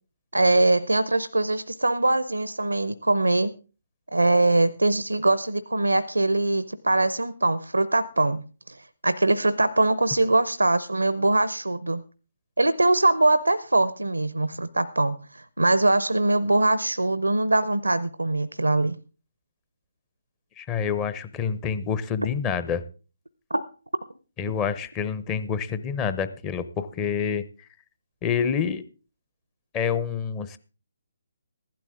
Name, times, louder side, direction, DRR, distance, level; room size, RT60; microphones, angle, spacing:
voice 1, 0.3-3.5 4.1-8.8 9.0-12.0 12.6-19.0 23.5-23.6, right 2 dB, 85° right, 14 dB, 0.7 m, -22 dB
voice 2, 20.6-22.8 24.4-27.7 28.2-28.8 29.7-30.6, left 7 dB, 20° left, 13 dB, 0.8 m, -27 dB
15.5 x 12.0 x 3.7 m, 0.35 s
figure-of-eight pair, 140°, 0 cm